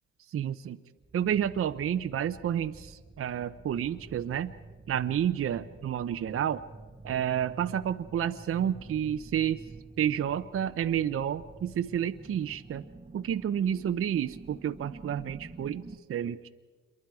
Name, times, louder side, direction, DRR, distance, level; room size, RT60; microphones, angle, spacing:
voice 1, 0.3-0.8 1.1-4.5 4.9-6.6 7.0-9.6 10.0-12.8 13.1-15.8 16.1-16.5, right 9 dB, 45° right, 9 dB, 0.7 m, -30 dB
sound 1, 1.0-16.0, right 2 dB, 15° right, 1.2 m, -49 dB
27.0 x 23.0 x 4.8 m, 1.4 s
cardioid pair, 90°, 30 cm